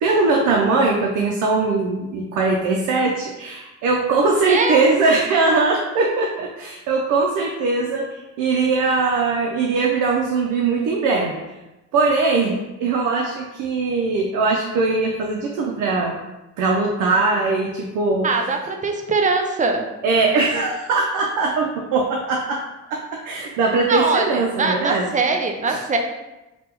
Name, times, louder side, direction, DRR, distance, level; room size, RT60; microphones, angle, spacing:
voice 1, 0.0-8.1 8.4-11.4 11.9-16.1 16.6-18.3 20.0-22.6 22.9-25.1 25.7-25.8, right 3 dB, 85° right, 0 dB, 0.5 m, -20 dB
voice 2, 4.5-4.8 18.2-19.9 23.9-26.0, right 3 dB, 25° right, 3 dB, 0.4 m, -22 dB
3.4 x 2.2 x 2.9 m, 1.0 s
cardioid pair, 90°, 30 cm